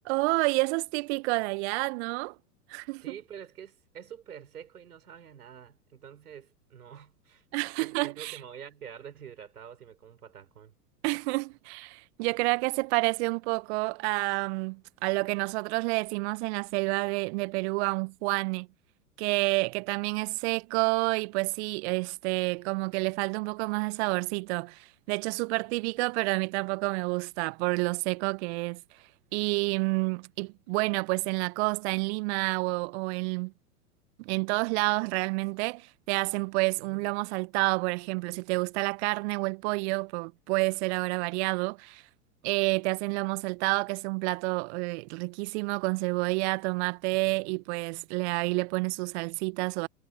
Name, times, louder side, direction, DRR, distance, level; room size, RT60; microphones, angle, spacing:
voice 1, 0.0-2.3 2.7-3.1 7.5-8.4 11.0-18.7 19.2-28.8 29.3-33.5 34.2-42.0 42.4-49.9, right 28 dB, 45° right, 1.5 m, -29 dB
voice 2, 3.0-7.4 7.8-10.7 36.9-37.1 47.1-47.6, right 8 dB, 70° right, 4.8 m, -47 dB
figure-of-eight pair, 100°, 46 cm